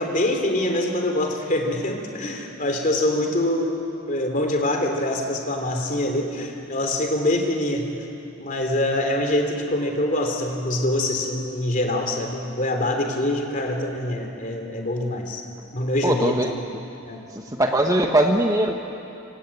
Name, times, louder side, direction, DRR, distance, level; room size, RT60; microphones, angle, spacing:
voice 1, 0.0-3.8 4.1-7.9 8.4-15.4 15.7-16.6 17.0-17.2, left 1 dB, 35° left, 3 dB, 3.3 m, -24 dB
voice 2, 16.0-16.9 17.3-18.7, right 1 dB, 15° right, 3 dB, 1.3 m, -21 dB
27.0 x 25.5 x 8.6 m, 2.7 s
head